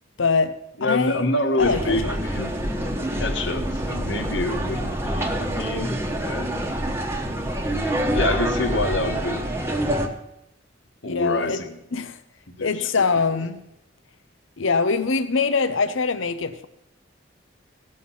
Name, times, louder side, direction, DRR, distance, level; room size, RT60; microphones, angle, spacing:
voice 1, 0.2-2.1 11.0-11.6 11.9-12.2 12.6-13.6 14.6-16.7, left 4 dB, 85° left, 0.8 m, -23 dB
voice 2, 0.8-2.5 2.8-6.0 6.3-6.5 8.1-9.5 11.0-11.8 12.6-13.1 13.3-13.4, left 2 dB, 70° left, 1.3 m, -27 dB
sound 1, 1.6-10.1, right 1 dB, 15° right, 1.1 m, -26 dB
17.5 x 6.6 x 5.6 m
head